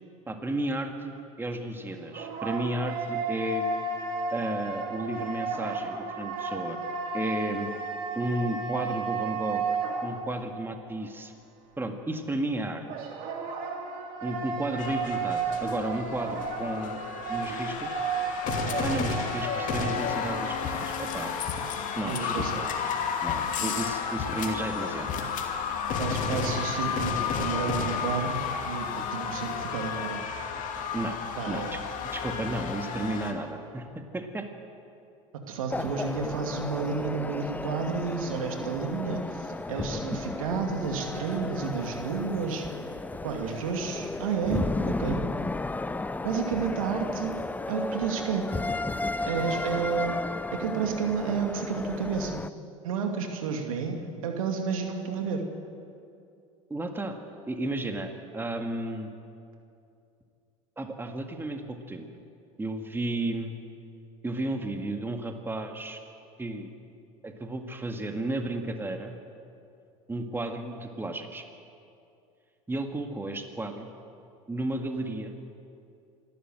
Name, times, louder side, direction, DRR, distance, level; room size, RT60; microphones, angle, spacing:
voice 1, 0.3-3.7 4.3-6.8 7.1-7.7 8.2-9.6 10.0-11.3 11.8-12.8 14.2-17.0 17.3-18.0 18.8-21.3 22.0-22.7 23.2-25.1 29.0-29.1 30.9-31.2 31.5-31.8 32.1-34.5 56.7-57.2 57.5-59.1 60.8-62.1 62.6-63.5 64.2-66.0 66.4-66.7 67.2-69.1 70.1-71.4 72.7-73.9 74.5-75.4, right 1 dB, 10° right, 5 dB, 2.0 m, -33 dB
sound 1, 1.9-10.6 12.9-20.6, right 3 dB, 55° right, 3.2 m, -33 dB
sound 2, 14.8-33.3, left 6 dB, 50° left, 2.6 m, -32 dB
voice 2, 22.1-22.6 23.6-23.7 26.0-30.3 31.4-31.8 35.5-42.7 43.2-45.2 46.2-47.4 47.7-48.5 49.3-50.2 50.5-52.4 52.8-55.4, right 6 dB, 80° right, 4 dB, 2.4 m, -31 dB
sound 3, 35.7-52.5, left 2 dB, 10° left, 0.6 m, -34 dB
26.5 x 12.5 x 7.8 m, 2.6 s
hypercardioid pair, 80°, 17 cm